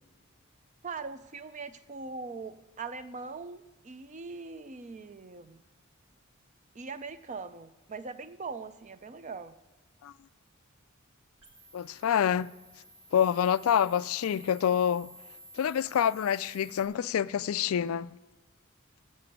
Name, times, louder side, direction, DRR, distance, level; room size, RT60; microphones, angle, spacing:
voice 1, 0.8-5.6 6.7-9.6, right 4 dB, 35° right, 0.5 m, -41 dB
sound 1, 11.4-16.9, right 1 dB, 70° right, 1.7 m, -52 dB
voice 2, 11.7-12.5 13.1-15.1 15.6-18.1, left 9 dB, 85° left, 0.3 m, -27 dB
7.7 x 6.8 x 7.4 m
head